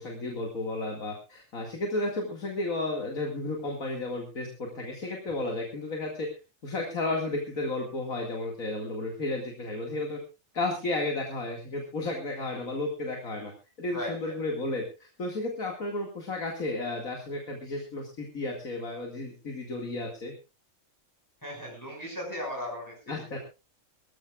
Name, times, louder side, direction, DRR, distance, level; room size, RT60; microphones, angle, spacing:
voice 1, 0.0-6.3 6.6-10.2 10.5-13.5 13.8-20.3 23.1-23.4, left 2 dB, 75° left, 1 dB, 2.7 m, -33 dB
voice 2, 13.9-14.3 21.4-22.9 23.3-23.4, left 1 dB, 15° left, -1 dB, 5.9 m, -36 dB
23.0 x 14.5 x 2.5 m, 0.28 s
omnidirectional pair, 1.4 m